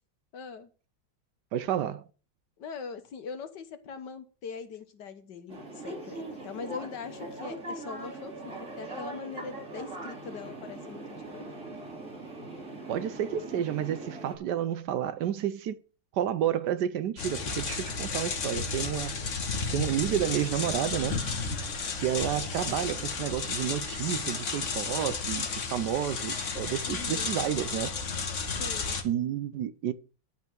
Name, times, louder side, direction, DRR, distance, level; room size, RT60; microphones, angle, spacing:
voice 1, 0.3-0.7 2.6-11.5 26.9-27.3 28.6-29.0, left 5 dB, 70° left, 1.8 m, -42 dB
voice 2, 1.5-2.1 12.9-15.8 16.1-19.2 19.7-21.2 21.9-27.9 29.0-29.9, right 10 dB, 70° right, 1.2 m, -30 dB
sound 1, 5.5-14.4, right 2 dB, 40° right, 3.0 m, -41 dB
sound 2, 17.2-29.0, left 4 dB, 45° left, 1.4 m, -33 dB
11.5 x 4.4 x 7.4 m
omnidirectional pair, 2.0 m